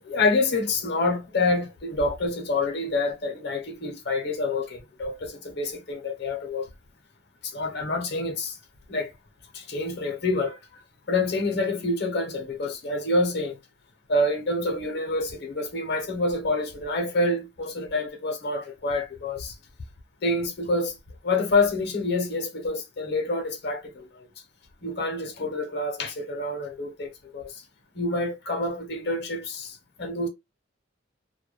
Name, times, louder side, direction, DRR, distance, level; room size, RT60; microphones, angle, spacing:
voice 1, 0.0-6.7 7.5-8.5 8.9-9.1 9.5-10.6 11.1-13.6 14.1-19.5 20.2-20.9 21.2-24.1 24.8-27.5 27.9-30.3, left 2 dB, 60° left, 0.7 m, -27 dB
2.2 x 2.1 x 3.0 m
head